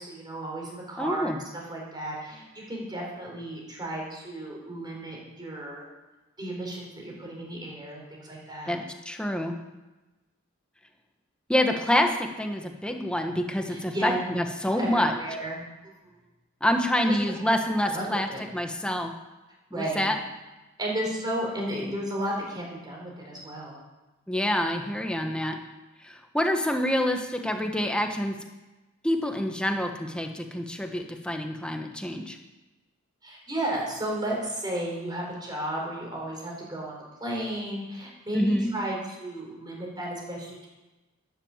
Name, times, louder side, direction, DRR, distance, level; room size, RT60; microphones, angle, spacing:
voice 1, 0.0-5.8 6.4-8.8 13.7-14.2 14.8-15.6 16.0-16.2 17.0-17.2 17.9-18.4 19.7-20.1 20.8-23.8 27.5-27.7 29.4-29.5 33.2-40.7, right 1 dB, 20° right, -2 dB, 4.4 m, -34 dB
voice 2, 1.0-1.4 8.7-9.5 11.5-12.1 12.4-15.1 16.6-19.1 19.7-20.1 24.3-25.6 26.0-28.3 29.0-32.4 38.3-38.8, left 1 dB, 5° left, 4 dB, 1.3 m, -27 dB
12.5 x 10.5 x 7.4 m, 1.1 s
head